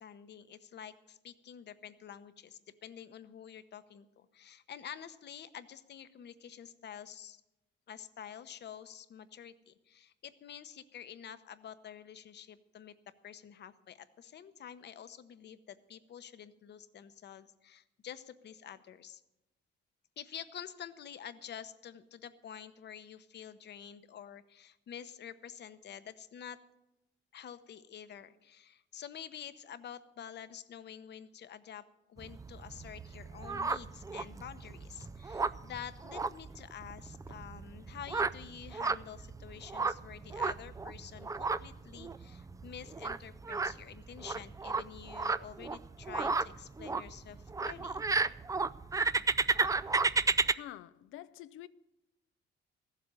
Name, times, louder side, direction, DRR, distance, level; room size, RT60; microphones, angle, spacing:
voice 1, 0.0-7.4 7.9-12.9 13.2-19.2 20.2-26.6 27.3-31.8 32.1-48.1, left 9 dB, 60° left, 0.9 m, -48 dB
sound 1, 32.2-50.5, right 4 dB, 15° right, 0.4 m, -34 dB
voice 2, 50.5-51.7, left 13 dB, 90° left, 0.5 m, -47 dB
14.5 x 7.6 x 7.7 m
cardioid pair, 90°, 20 cm